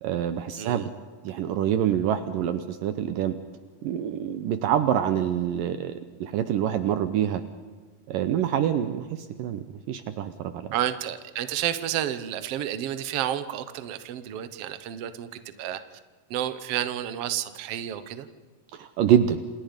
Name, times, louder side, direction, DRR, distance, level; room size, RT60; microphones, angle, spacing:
voice 1, 0.0-0.9 1.2-3.3 3.8-5.9 6.2-7.4 8.1-10.6 18.7-19.4, right 10 dB, 70° right, 10 dB, 2.4 m, -26 dB
voice 2, 10.7-15.8 16.3-18.3, right 11 dB, 85° right, 11 dB, 1.3 m, -30 dB
28.0 x 28.0 x 5.3 m, 1.4 s
omnidirectional pair, 4.4 m